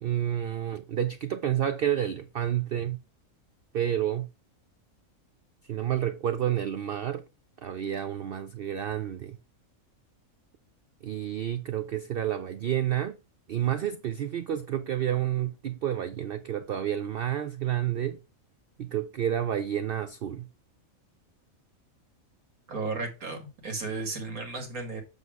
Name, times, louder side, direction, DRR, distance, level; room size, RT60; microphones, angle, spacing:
voice 1, 0.0-3.0 3.7-4.3 5.7-7.2 7.6-9.4 11.0-13.2 13.5-18.2 18.8-20.5, right 10 dB, 65° right, 0.6 m, -29 dB
voice 2, 22.7-25.0, right 3 dB, 85° right, 2.2 m, -34 dB
7.9 x 3.6 x 4.7 m
omnidirectional pair, 1.5 m